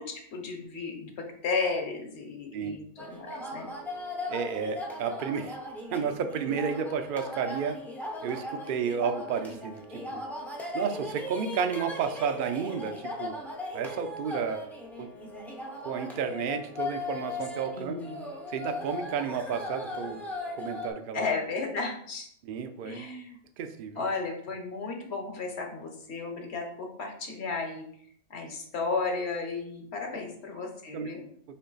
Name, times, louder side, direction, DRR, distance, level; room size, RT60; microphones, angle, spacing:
voice 1, 0.0-3.7 17.7-18.2 21.1-22.3 22.8-23.4 24.0-27.8 28.3-31.2, left 4 dB, 65° left, 2 dB, 1.1 m, -34 dB
sound 1, 3.0-20.9, left 2 dB, ahead, 0.4 m, -38 dB
voice 2, 4.3-5.6 5.9-7.8 8.2-10.2 10.7-13.3 13.7-14.6 15.0-15.1 15.8-18.0 18.5-20.2 20.6-21.2 22.5-23.1 23.6-24.0 30.9-31.1, right 6 dB, 60° right, 8 dB, 0.6 m, -32 dB
4.3 x 3.0 x 3.9 m, 0.64 s
omnidirectional pair, 1.2 m